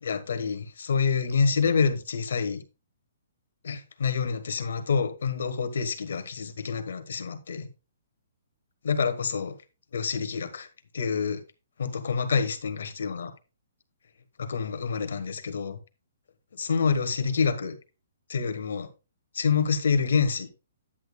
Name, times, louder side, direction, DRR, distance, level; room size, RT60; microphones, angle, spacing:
voice 1, 0.0-2.6 3.6-7.7 8.8-9.6 9.9-10.7 10.9-11.4 11.8-13.3 14.4-15.8 16.6-17.8 18.3-18.9 19.3-20.5, left 5 dB, 70° left, 1.4 m, -27 dB
10.0 x 8.9 x 2.3 m
hypercardioid pair, 175°, 0 cm